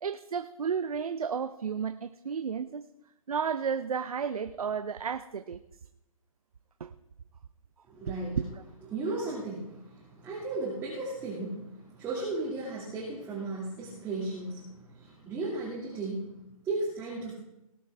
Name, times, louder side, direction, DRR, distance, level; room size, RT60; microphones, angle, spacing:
voice 1, 0.0-2.9 3.3-5.6 6.8-6.9 8.1-8.5, right 6 dB, 80° right, 11 dB, 0.7 m, -32 dB
voice 2, 7.9-8.4 8.9-17.3, right 2 dB, 10° right, -7 dB, 2.2 m, -35 dB
19.0 x 9.5 x 3.4 m, 0.87 s
hypercardioid pair, 155°, 19 cm